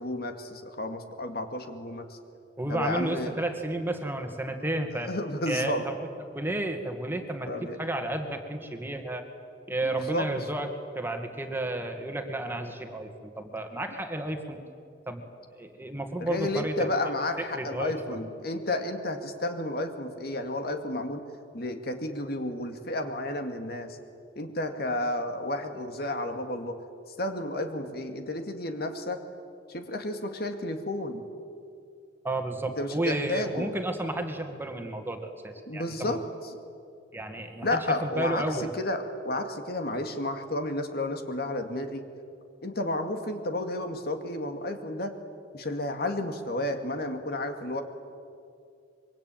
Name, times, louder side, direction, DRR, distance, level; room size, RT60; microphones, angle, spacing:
voice 1, 0.0-2.2 2.7-3.4 5.0-5.9 7.5-7.8 9.8-10.3 16.2-21.2 21.5-24.0 24.4-26.8 27.2-29.2 29.7-31.3 32.8-33.7 35.7-36.2 37.6-42.0 42.6-45.1 45.5-47.8, left 1 dB, 60° left, 6 dB, 2.2 m, -32 dB
voice 2, 2.6-5.1 5.5-9.3 9.7-14.6 15.1-15.2 15.5-16.9 17.5-18.2 32.2-36.2 37.1-38.7, right 1 dB, 10° right, 5 dB, 2.0 m, -32 dB
25.0 x 23.5 x 9.1 m, 2.4 s
head